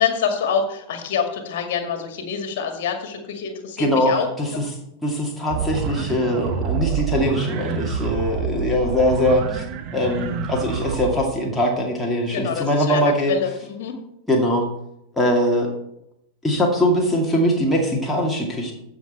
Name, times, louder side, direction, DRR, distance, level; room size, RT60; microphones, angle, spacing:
voice 1, 0.0-4.3 12.2-13.9, left 7 dB, 50° left, 5 dB, 2.0 m, -26 dB
voice 2, 3.8-4.7 5.0-9.6 9.9-13.3 14.3-14.7 15.1-15.7 16.4-18.7, equal, 5° left, -2 dB, 2.3 m, -21 dB
sound 1, 5.5-11.2, right 6 dB, 40° right, 1.1 m, -27 dB
14.5 x 6.0 x 4.3 m, 0.79 s
figure-of-eight pair, 90°, 0 cm